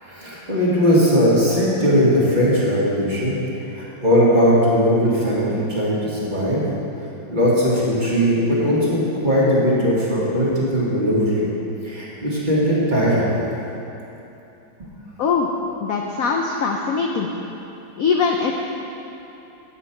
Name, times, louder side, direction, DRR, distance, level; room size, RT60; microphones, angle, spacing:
voice 1, 0.0-3.4 3.7-6.6 7.3-11.5 11.8-13.3 14.8-14.9, equal, 25° right, -8 dB, 1.9 m, -19 dB
voice 2, 15.8-17.3 18.0-18.5, left 5 dB, 70° left, 1 dB, 0.8 m, -21 dB
8.6 x 5.6 x 7.2 m, 3.0 s
omnidirectional pair, 2.1 m